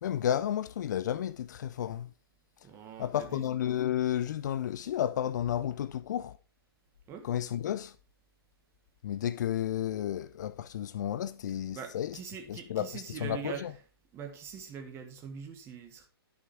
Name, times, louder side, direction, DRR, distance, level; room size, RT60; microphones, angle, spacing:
voice 1, 0.0-2.1 3.0-6.4 7.2-8.0 9.0-12.2 12.5-13.7, left 10 dB, 45° left, 0.5 m, -32 dB
voice 2, 2.6-3.4 7.1-7.3 11.7-13.7 14.1-16.1, right 7 dB, 20° right, 1.5 m, -43 dB
11.5 x 6.2 x 3.5 m
figure-of-eight pair, 130°, 13 cm